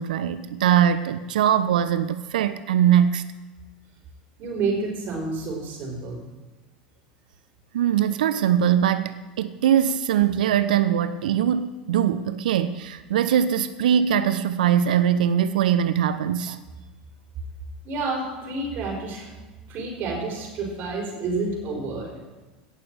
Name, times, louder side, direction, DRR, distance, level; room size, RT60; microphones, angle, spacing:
voice 1, 0.0-3.2 7.7-16.6, right 9 dB, 70° right, 12 dB, 0.5 m, -21 dB
voice 2, 4.4-6.2 17.8-19.3 19.7-22.1, right 3 dB, 45° right, -1 dB, 5.1 m, -29 dB
17.0 x 6.9 x 6.1 m, 1.2 s
figure-of-eight pair, 85°, 5 cm